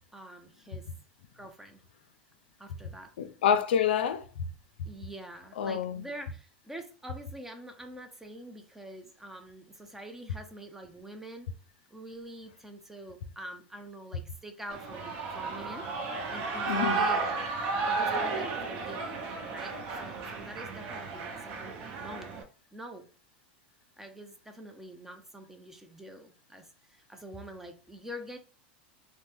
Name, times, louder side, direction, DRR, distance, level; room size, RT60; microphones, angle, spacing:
voice 1, 0.1-0.8 1.3-1.8 2.6-3.1 4.8-11.5 11.9-15.9 16.3-17.3 17.8-19.2 19.5-22.3 22.7-23.0 24.0-28.4, right 1 dB, 5° right, 0.6 m, -45 dB
voice 2, 3.2-4.5 5.6-6.0 16.7-17.0, left 8 dB, 85° left, 0.4 m, -27 dB
Shout / Cheering, 14.7-22.4, right 4 dB, 55° right, 0.7 m, -33 dB
3.2 x 2.1 x 2.6 m
hypercardioid pair, 110°, 6 cm